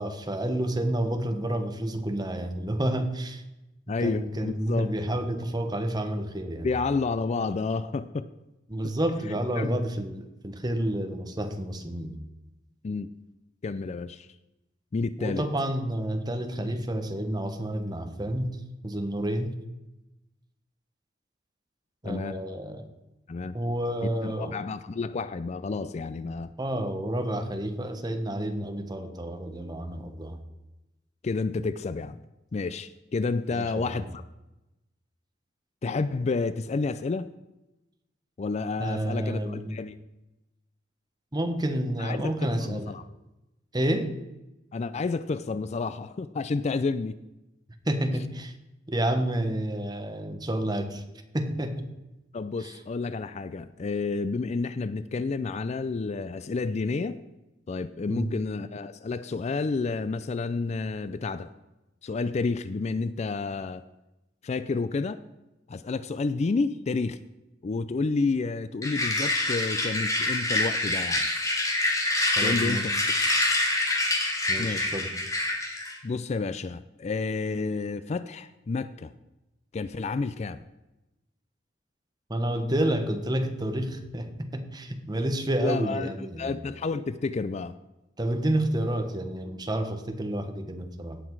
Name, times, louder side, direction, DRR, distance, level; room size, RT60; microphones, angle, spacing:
voice 1, 0.0-3.4 4.0-6.7 8.7-12.2 15.2-18.6 18.8-19.6 22.0-22.8 23.5-24.6 26.6-30.4 33.5-34.0 38.8-39.8 41.3-42.9 43.7-44.1 47.8-48.5 48.9-51.0 51.3-51.9 52.6-52.8 58.1-58.4 72.4-73.0 74.5-75.1 82.3-86.5 88.2-91.2, right 1 dB, 20° right, 6 dB, 1.2 m, -29 dB
voice 2, 3.9-4.9 6.6-8.3 9.6-9.8 12.8-13.1 13.6-14.3 14.9-15.5 22.0-22.4 23.3-23.5 24.2-26.5 31.2-32.2 32.5-34.2 35.8-37.3 38.4-40.0 42.0-43.0 44.7-47.2 52.3-57.2 57.7-61.5 62.0-63.8 64.4-65.2 65.7-67.2 67.6-71.3 72.4-73.2 74.6-74.9 76.0-79.1 79.7-80.6 85.6-86.1 86.4-87.7, left 4 dB, 35° left, 13 dB, 0.4 m, -30 dB
sound 1, 68.8-76.0, left 2 dB, 20° left, 2.2 m, -26 dB
17.0 x 6.0 x 4.6 m, 0.97 s
head